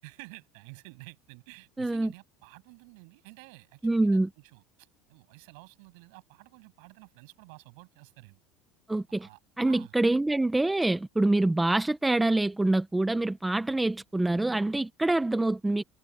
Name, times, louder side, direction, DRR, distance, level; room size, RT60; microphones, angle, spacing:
voice 1, 0.0-8.4 9.2-9.9, right 31 dB, 75° right, 7.9 m, -51 dB
voice 2, 1.8-2.1 3.8-4.3 8.9-9.3 9.6-15.8, right 2 dB, 5° right, 0.8 m, -25 dB
cardioid pair, 170°, 0 cm